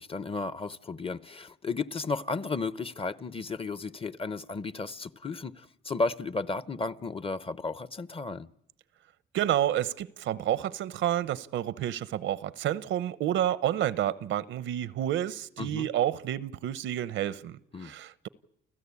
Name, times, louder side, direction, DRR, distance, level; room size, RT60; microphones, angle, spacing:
voice 1, 0.0-8.5 15.6-15.9 17.7-17.9, left 3 dB, 30° left, 0.8 m, -34 dB
voice 2, 9.3-18.3, right 11 dB, 75° right, 0.8 m, -29 dB
29.5 x 14.5 x 8.4 m
cardioid pair, 90°, 20 cm